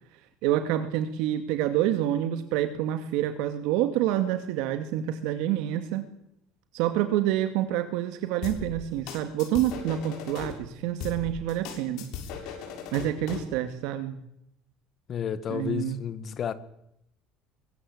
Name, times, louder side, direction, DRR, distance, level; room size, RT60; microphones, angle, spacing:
voice 1, 0.4-6.1 6.7-12.1 12.9-14.2 15.5-16.0, right 12 dB, 70° right, 2.1 m, -27 dB
sound 1, 8.4-10.5 11.0-13.5, left 7 dB, 60° left, 6.8 m, -38 dB
voice 2, 15.1-16.5, left 8 dB, 30° left, 1.6 m, -31 dB
23.0 x 21.0 x 8.7 m
cardioid pair, 160°, 0 cm